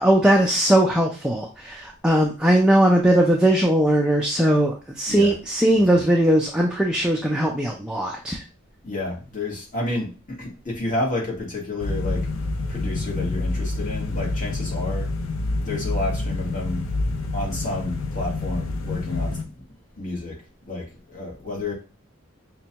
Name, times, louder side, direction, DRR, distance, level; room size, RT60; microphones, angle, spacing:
voice 1, 0.0-8.4, right 1 dB, 5° right, -1 dB, 0.3 m, -19 dB
voice 2, 8.8-12.3 12.7-15.1 15.6-16.9 17.3-19.6 20.0-20.4 20.7-21.7, left 2 dB, 40° left, -2 dB, 1.3 m, -30 dB
sound 1, 11.8-19.4, left 2 dB, 75° left, 0.5 m, -27 dB
5.1 x 2.2 x 2.8 m, 0.33 s
head